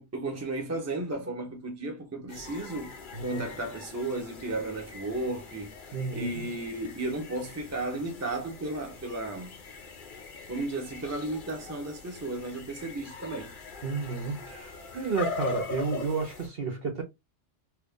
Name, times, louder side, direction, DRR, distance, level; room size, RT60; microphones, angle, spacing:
voice 1, 0.0-2.9 3.2-5.7 6.1-9.5 10.5-13.5 14.9-15.1, right 2 dB, 15° right, 0.8 m, -34 dB
sound 1, 2.3-16.5, left 4 dB, 50° left, 0.8 m, -42 dB
voice 2, 3.1-3.5 5.9-6.5 13.8-17.0, right 4 dB, 55° right, 0.9 m, -32 dB
2.8 x 2.5 x 3.5 m
omnidirectional pair, 1.3 m